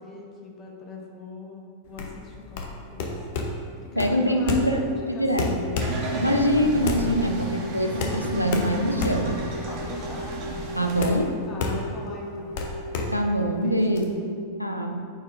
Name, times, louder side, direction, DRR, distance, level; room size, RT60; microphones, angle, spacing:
voice 1, 0.0-2.6 2.9-3.2 3.8-5.7 6.0-6.5 9.7-10.3 11.4-12.6 13.6-14.4, left 3 dB, 30° left, 0 dB, 0.9 m, -40 dB
sound 1, 1.9-14.0, left 3 dB, 50° left, 0.7 m, -31 dB
voice 2, 3.9-4.8 5.2-5.5 6.2-9.4 10.8-11.4 13.1-14.0 14.6-15.1, equal, 90° left, 4 dB, 0.5 m, -24 dB
sound 2, 4.3-14.5, equal, 70° right, 0.8 m, -38 dB
sound 3, 5.8-11.1, right 1 dB, 40° right, 1.1 m, -33 dB
9.0 x 4.3 x 2.5 m, 2.2 s
figure-of-eight pair, 90°, 0 cm